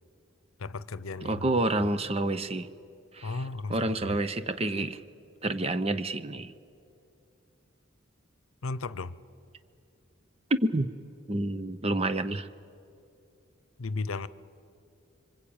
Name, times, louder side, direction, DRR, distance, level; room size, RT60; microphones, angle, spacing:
voice 1, 0.6-1.5 3.2-4.2 8.6-9.2 13.8-14.3, left 3 dB, 90° left, 17 dB, 0.7 m, -35 dB
voice 2, 1.2-2.7 3.1-3.4 3.7-5.0 5.4-6.5 10.7-10.9 11.3-12.5, right 2 dB, 30° right, 11 dB, 0.8 m, -29 dB
26.0 x 24.5 x 8.8 m, 2.6 s
head